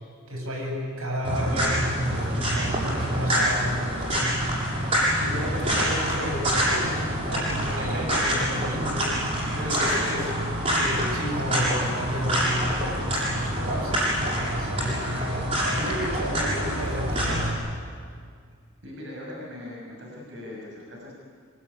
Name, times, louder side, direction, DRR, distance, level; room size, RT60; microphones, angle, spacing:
voice 1, 0.3-4.3 5.2-10.3 10.8-17.5, equal, 80° right, 0 dB, 7.7 m, -32 dB
sound 1, 1.2-17.5, equal, 30° right, 7.7 m, -26 dB
voice 2, 18.8-21.1, left 1 dB, 55° right, -2 dB, 6.5 m, -40 dB
26.0 x 23.0 x 9.9 m, 2.1 s
head